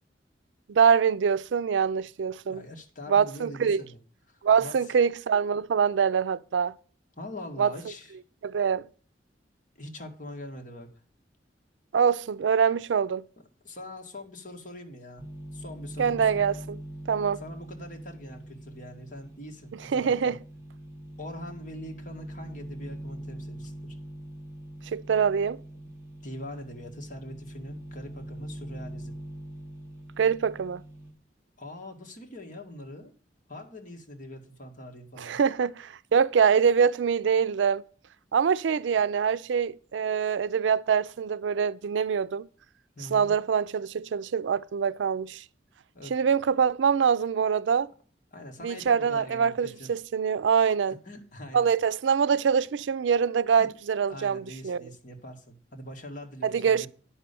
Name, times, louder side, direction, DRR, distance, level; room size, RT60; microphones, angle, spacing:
voice 1, 0.7-2.6 3.1-3.8 4.4-6.7 7.6-7.7 8.4-8.9 11.9-13.2 16.0-16.8 17.1-17.4 19.9-20.4 24.9-25.6 30.2-30.8 35.2-37.8 38.3-42.5 43.1-45.4 46.1-47.9 48.6-51.0 51.5-54.8 56.4-56.9, right 7 dB, 90° right, 0.4 m, -24 dB
voice 2, 2.5-4.0 4.3-4.9 7.2-8.2 9.8-10.9 13.6-15.3 15.5-16.4 17.4-20.4 21.2-24.0 26.2-29.1 31.6-33.1 33.5-35.4 43.0-43.3 45.9-46.1 48.3-49.9 50.9-51.7 53.6-53.7 54.1-56.9, left 1 dB, 45° left, 1.9 m, -43 dB
sound 1, 15.2-31.1, right 1 dB, 15° right, 2.4 m, -42 dB
9.9 x 5.6 x 6.8 m
head